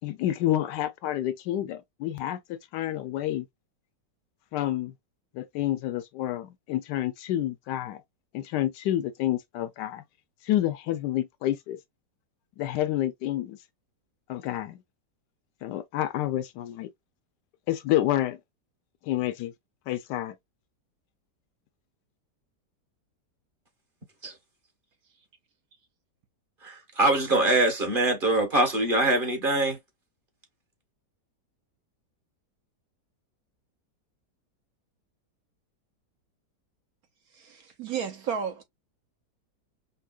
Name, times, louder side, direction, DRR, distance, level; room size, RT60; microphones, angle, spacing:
voice 1, 0.0-3.5 4.5-4.9 5.3-8.0 8.3-10.0 10.5-11.8 12.6-13.6 14.3-14.8 15.6-16.9 17.7-18.4 19.1-19.5 19.9-20.3, left 13 dB, 80° left, 1.2 m, -29 dB
voice 2, 26.6-29.8, right 2 dB, 35° right, 1.2 m, -23 dB
voice 3, 37.4-38.6, right 7 dB, 65° right, 1.0 m, -32 dB
5.3 x 2.1 x 2.3 m
omnidirectional pair, 1.8 m